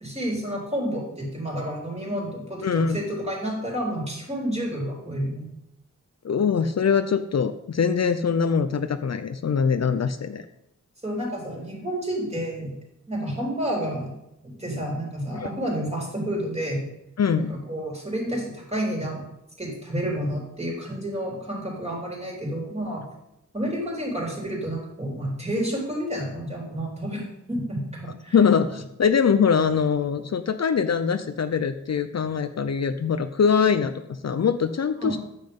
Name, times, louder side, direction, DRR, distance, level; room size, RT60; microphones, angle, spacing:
voice 1, 0.0-5.5 11.0-12.7 13.1-14.1 14.4-16.8 17.4-19.2 19.6-23.0 23.5-27.2 27.5-28.4 35.0-35.2, right 1 dB, 20° right, -3 dB, 3.5 m, -30 dB
voice 2, 2.6-3.0 6.2-10.5 15.3-15.5 17.2-17.5 28.3-35.2, left 6 dB, 55° left, 10 dB, 0.5 m, -23 dB
9.3 x 7.4 x 5.3 m, 0.85 s
wide cardioid pair, 100°, 31 cm